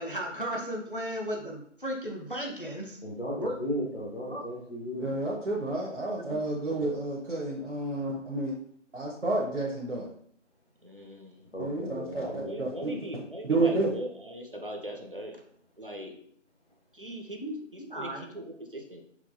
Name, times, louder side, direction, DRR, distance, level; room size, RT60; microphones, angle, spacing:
voice 1, 0.0-3.0 3.4-3.6 4.3-4.4 6.3-6.4 17.4-18.3, equal, 45° left, 0 dB, 0.5 m, -35 dB
voice 2, 3.0-5.1 11.5-12.6, equal, 65° left, -5 dB, 1.1 m, -35 dB
voice 3, 5.0-8.6 8.9-10.1 11.6-13.9, right 2 dB, 70° right, -3 dB, 1.0 m, -30 dB
voice 4, 10.8-11.5 12.4-15.4 15.8-16.1 16.9-17.4 17.7-19.0, equal, 45° right, 2 dB, 0.6 m, -40 dB
4.5 x 2.3 x 2.6 m, 0.64 s
figure-of-eight pair, 180°, 37 cm